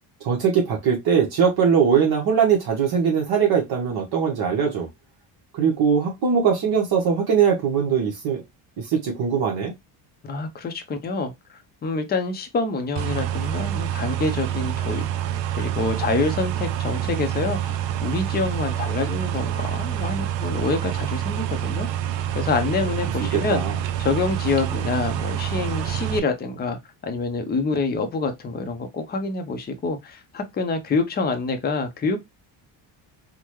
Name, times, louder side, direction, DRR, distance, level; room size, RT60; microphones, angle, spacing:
voice 1, 0.2-4.9 5.5-8.4 8.8-9.7 23.3-23.8, right 7 dB, 55° right, 1.0 m, -21 dB
voice 2, 10.3-15.1 15.5-21.9 22.3-23.6 24.0-32.2, left 3 dB, 20° left, 0.6 m, -26 dB
sound 1, 13.0-26.2, right 11 dB, 70° right, 0.6 m, -27 dB
3.6 x 2.1 x 3.0 m
cardioid pair, 130°, 45 cm